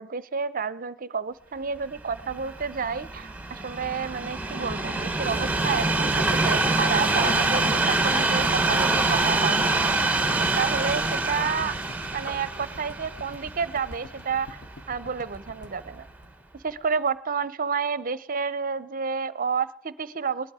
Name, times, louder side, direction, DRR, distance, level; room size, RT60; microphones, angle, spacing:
voice 1, 0.0-9.6 10.3-11.7 12.1-14.6 14.9-16.1 16.6-20.5, right 6 dB, 40° right, 17 dB, 0.6 m, -30 dB
Train, 2.0-15.2 15.9-16.0, right 2 dB, 5° right, 0.8 m, -25 dB
sound 1, 4.7-16.8 17.1-17.2 17.4-17.5, left 1 dB, 50° left, 1.2 m, -46 dB
19.5 x 11.5 x 4.8 m, 0.73 s
head